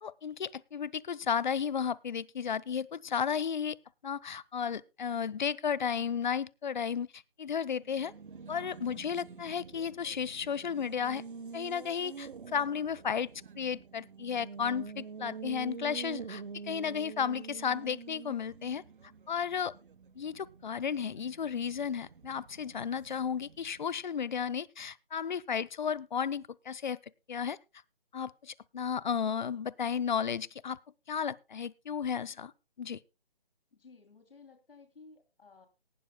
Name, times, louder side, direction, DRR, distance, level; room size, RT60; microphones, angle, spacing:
voice 1, 0.0-3.8 4.0-7.1 7.4-8.1 8.5-11.2 11.5-13.3 13.6-18.8 19.3-19.7 20.2-27.0 27.3-27.6 28.1-30.8 31.1-32.5 32.8-33.0, left 7 dB, 50° left, 0.6 m, -33 dB
Race car auto racing, 7.7-24.0, right 6 dB, 55° right, 1.1 m, -47 dB
voice 2, 33.7-35.7, left 4 dB, 65° left, 2.9 m, -56 dB
18.0 x 12.0 x 2.2 m
figure-of-eight pair, 155°, 30 cm